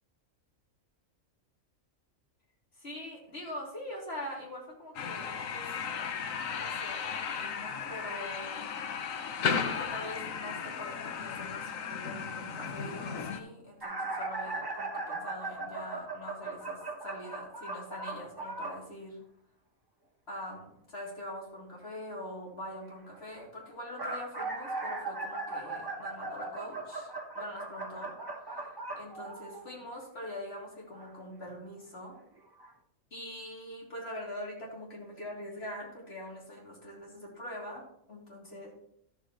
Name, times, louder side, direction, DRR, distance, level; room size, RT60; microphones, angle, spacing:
voice 1, 2.7-5.7 6.6-8.6 9.5-19.2 20.3-28.1 28.9-32.2 33.1-38.7, left 1 dB, 50° left, -3 dB, 3.1 m, -43 dB
sound 1, 5.0-13.4, left 6 dB, 85° left, 1.2 m, -35 dB
sound 2, 13.8-18.8 23.7-29.8 30.9-31.1 32.1-32.2 32.6-32.7, right 2 dB, 20° right, 1.0 m, -38 dB
13.0 x 7.3 x 3.0 m, 0.72 s
omnidirectional pair, 1.4 m